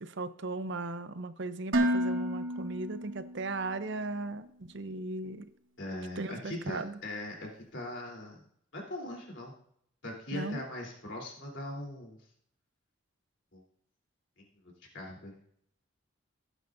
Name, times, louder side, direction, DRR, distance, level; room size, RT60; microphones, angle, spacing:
voice 1, 0.0-4.5 4.7-5.5 6.2-6.9 10.3-10.6, right 2 dB, 60° right, 12 dB, 0.7 m, -37 dB
Dishes pots and pans, 1.7-3.8, equal, 75° right, 1.3 m, -31 dB
voice 2, 5.8-8.4 8.7-9.5 10.0-12.2 13.5-13.6 14.4-15.3, left 1 dB, 65° left, -1 dB, 3.4 m, -40 dB
16.0 x 9.0 x 2.6 m, 0.69 s
head